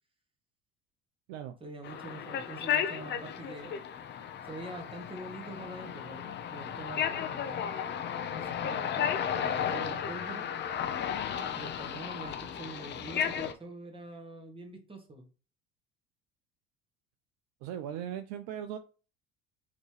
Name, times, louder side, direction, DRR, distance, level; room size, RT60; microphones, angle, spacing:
voice 1, 1.6-3.8 4.4-7.8 8.3-10.5 11.6-15.3, right 2 dB, 15° right, 3 dB, 1.6 m, -45 dB
sound 1, 1.8-13.5, left 8 dB, 35° left, 0.6 m, -34 dB
voice 2, 17.6-18.8, right 10 dB, 60° right, 10 dB, 0.5 m, -38 dB
5.2 x 3.0 x 3.2 m, 0.35 s
hypercardioid pair, 70°, 31 cm